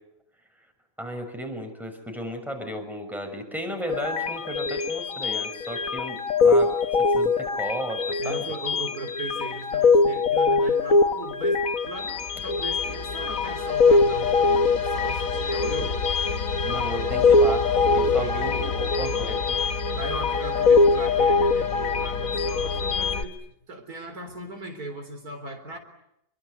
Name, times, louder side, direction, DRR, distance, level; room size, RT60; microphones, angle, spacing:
voice 1, 1.0-8.4 16.6-19.4, equal, ahead, 4 dB, 6.0 m, -34 dB
sound 1, 3.9-23.2, left 4 dB, 60° left, 1.6 m, -23 dB
voice 2, 8.2-16.0 17.9-18.7 19.0-19.3 19.9-23.4 23.7-25.8, right 1 dB, 75° right, 5 dB, 4.4 m, -38 dB
28.5 x 23.5 x 8.3 m, 0.80 s
omnidirectional pair, 1.6 m